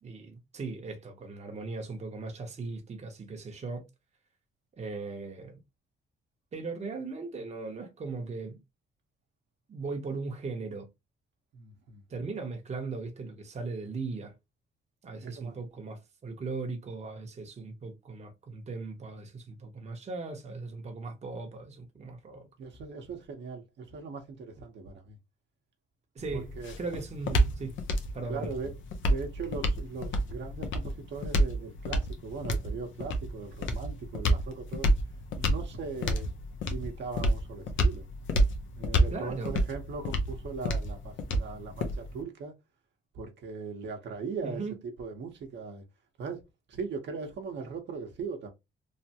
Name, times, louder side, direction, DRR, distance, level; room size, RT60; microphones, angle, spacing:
voice 1, 0.0-3.8 4.8-5.6 6.5-8.6 9.7-10.9 12.1-14.4 15.0-22.5 26.1-26.5 26.8-27.7 28.1-28.5 39.1-39.6 44.4-44.8, right 3 dB, 35° right, 0.8 m, -38 dB
voice 2, 11.5-12.0 15.2-15.6 22.6-25.2 26.3-26.7 28.3-28.7 29.1-34.9 35.4-36.3 36.7-38.1 38.8-42.5 43.1-44.6 45.0-45.8 46.2-46.4 46.7-48.5, right 4 dB, 65° right, 0.9 m, -39 dB
sound 1, 26.2-42.2, equal, 75° left, 0.7 m, -29 dB
3.2 x 2.1 x 2.8 m
cardioid pair, 90°, 20 cm